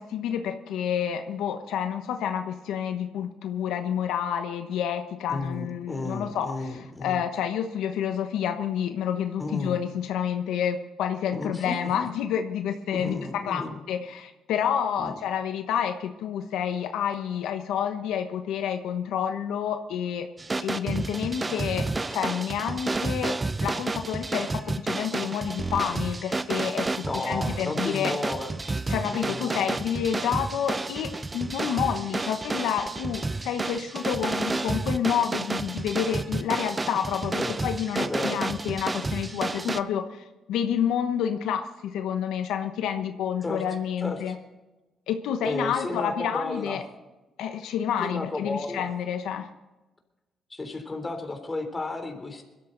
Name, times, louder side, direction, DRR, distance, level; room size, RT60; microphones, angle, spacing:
voice 1, 0.0-20.3 20.6-23.4 23.6-28.1 28.9-44.3 45.1-46.8 47.4-49.5, left 8 dB, 85° left, 6 dB, 1.0 m, -29 dB
voice 2, 5.3-7.2 9.4-9.8 11.3-11.9 12.9-13.8 15.0-15.2 27.0-28.5 29.0-29.8 37.3-37.6 38.0-38.4 43.4-43.6 44.0-44.4 45.4-46.8 48.0-48.9 50.5-52.4, left 2 dB, 25° left, 5 dB, 3.4 m, -33 dB
sound 1, 20.4-39.8, right 3 dB, 25° right, 0.7 m, -31 dB
21.5 x 13.0 x 4.0 m, 1.1 s
cardioid pair, 90°, 0 cm